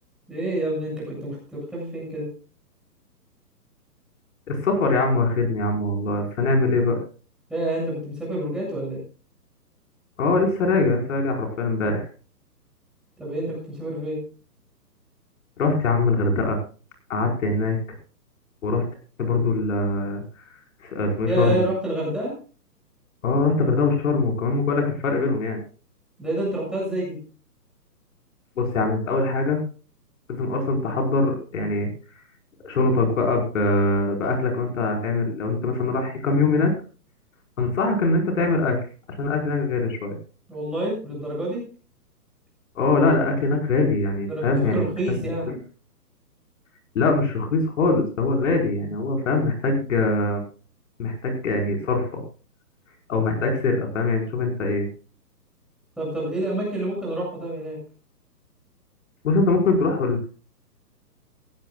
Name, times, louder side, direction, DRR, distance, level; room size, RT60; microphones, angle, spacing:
voice 1, 0.3-2.3 7.5-9.0 13.2-14.2 21.3-22.3 26.2-27.2 40.5-41.6 44.3-44.4 44.7-45.5 56.0-57.8, right 1 dB, ahead, -4 dB, 7.4 m, -28 dB
voice 2, 4.5-7.0 10.2-12.1 15.6-16.6 17.1-17.8 18.6-18.8 19.2-20.2 20.8-21.6 23.2-25.6 28.6-29.6 30.3-31.9 32.6-36.7 37.6-38.8 39.2-40.2 42.7-44.8 45.5-45.6 46.9-50.4 51.0-52.2 53.1-54.9 59.2-60.3, left 3 dB, 50° left, 2 dB, 5.1 m, -22 dB
17.0 x 16.5 x 2.4 m, 0.37 s
hypercardioid pair, 155°, 49 cm